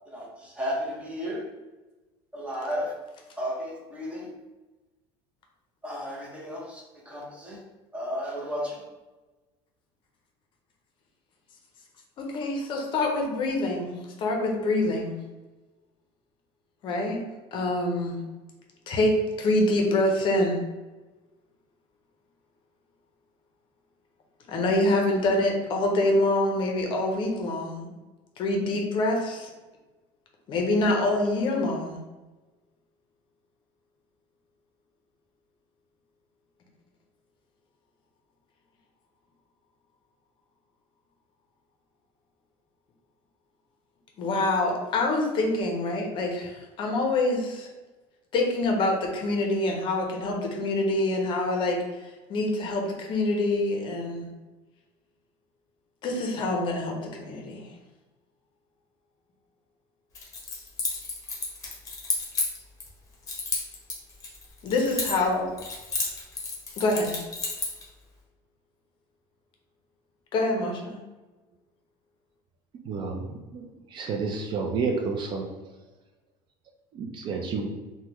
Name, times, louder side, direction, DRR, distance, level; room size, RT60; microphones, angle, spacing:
voice 1, 0.1-1.5 2.3-3.0 3.4-4.3 5.8-7.6 7.9-8.8, equal, 10° right, -3 dB, 0.7 m, -33 dB
voice 2, 12.3-15.2 16.8-17.2 17.5-18.2 18.9-20.6 24.5-27.9 28.4-29.5 30.5-32.0 44.2-47.7 48.3-54.3 56.0-57.7 64.6-65.5 66.8-67.2 70.3-71.0, left 2 dB, 45° left, 1 dB, 0.6 m, -26 dB
Keys jangling, 60.2-62.9 63.3-65.3 65.6-67.8, left 3 dB, 30° left, 0.9 m, -31 dB
voice 3, 72.8-75.5 76.9-77.7, right 4 dB, 40° right, 2 dB, 0.4 m, -30 dB
3.4 x 2.1 x 2.9 m, 1.2 s
cardioid pair, 140°, 12 cm